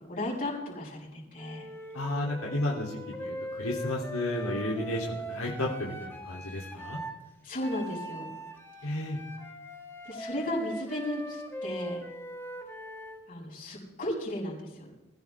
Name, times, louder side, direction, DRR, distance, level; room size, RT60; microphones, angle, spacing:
voice 1, 0.1-1.7 7.4-8.3 8.8-9.0 10.0-12.0 13.3-14.9, left 1 dB, 40° left, -3 dB, 6.8 m, -35 dB
Wind instrument woodwind instrument, 1.4-7.2 7.6-13.2, equal, 10° left, 2.0 m, -41 dB
voice 2, 1.9-7.0 8.8-9.2, left 1 dB, 80° left, -4 dB, 3.3 m, -32 dB
23.0 x 15.5 x 3.6 m, 0.99 s
head